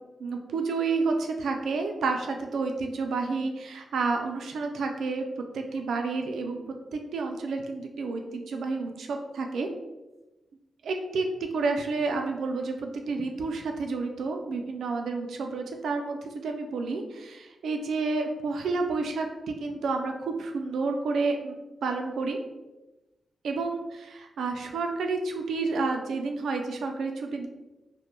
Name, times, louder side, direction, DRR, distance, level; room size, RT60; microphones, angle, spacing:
voice 1, 0.2-5.2 5.5-6.6 6.9-9.7 10.8-11.3 11.5-22.4 23.4-27.5, right 3 dB, 85° right, 4 dB, 0.3 m, -30 dB
2.1 x 2.1 x 3.0 m, 1.0 s
wide cardioid pair, 140°, 0 cm